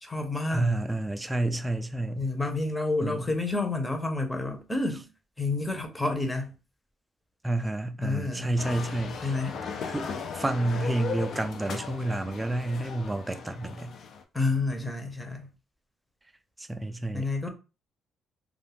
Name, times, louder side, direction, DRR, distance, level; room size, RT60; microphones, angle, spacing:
voice 1, 0.0-0.7 2.2-5.0 5.4-6.5 8.0-8.5 9.2-9.6 14.3-15.5 17.1-17.5, left 2 dB, 15° left, 0.7 m, -29 dB
voice 2, 0.5-2.3 3.0-3.3 7.4-9.5 9.9-13.9 16.6-17.5, right 2 dB, 15° right, 0.3 m, -30 dB
sound 1, 8.6-14.2, left 5 dB, 65° left, 0.4 m, -37 dB
2.3 x 2.0 x 3.3 m
cardioid pair, 90°, 0 cm